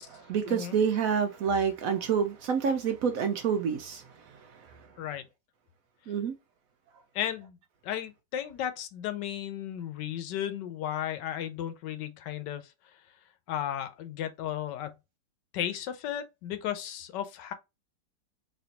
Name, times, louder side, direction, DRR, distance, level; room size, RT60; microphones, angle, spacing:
voice 1, 0.0-4.9 6.1-6.3, right 7 dB, 70° right, 0.8 m, -28 dB
voice 2, 7.1-7.6 7.8-12.6 13.5-14.9 15.5-17.5, left 10 dB, 90° left, 1.3 m, -34 dB
4.2 x 2.9 x 2.8 m
omnidirectional pair, 1.9 m